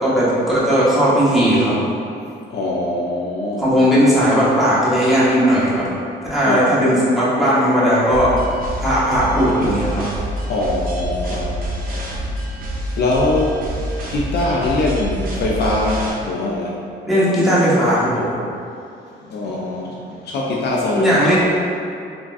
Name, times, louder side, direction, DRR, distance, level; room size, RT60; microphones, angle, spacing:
voice 1, 0.0-1.7 3.6-5.9 6.3-8.3 8.8-10.0 17.1-18.3 21.0-21.4, equal, ahead, -10 dB, 0.9 m, -16 dB
voice 2, 2.5-3.8 6.4-6.9 10.5-11.5 11.9-12.7 13.0-16.8 19.2-21.3, left 2 dB, 55° left, -3 dB, 0.4 m, -23 dB
sound 1, 8.1-16.1, equal, 45° right, 0.7 m, -27 dB
3.4 x 2.2 x 2.4 m, 2.5 s
cardioid pair, 90°, 20 cm